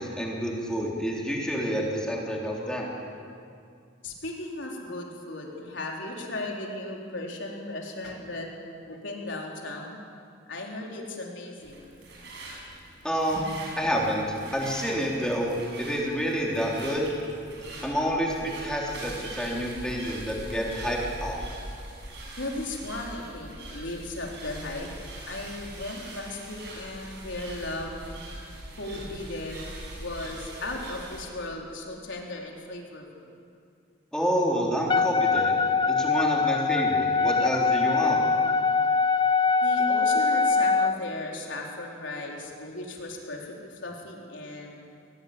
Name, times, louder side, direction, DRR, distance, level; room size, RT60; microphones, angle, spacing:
voice 1, 0.0-2.9 13.0-13.4 13.8-14.2 14.5-17.1 17.8-21.4 34.1-35.5 35.9-38.2, equal, 5° left, -2 dB, 3.6 m, -28 dB
voice 2, 4.0-8.5 8.8-10.0 10.5-11.9 13.3-13.4 22.4-24.9 25.3-28.1 28.8-29.6 30.0-33.3 39.6-44.8, left 2 dB, 75° left, -1 dB, 4.0 m, -36 dB
sound 1, 11.6-31.3, right 1 dB, 60° right, 7.1 m, -42 dB
Wind instrument woodwind instrument, 34.9-41.0, left 4 dB, 25° left, 0.6 m, -23 dB
21.0 x 20.5 x 8.8 m, 2.4 s
head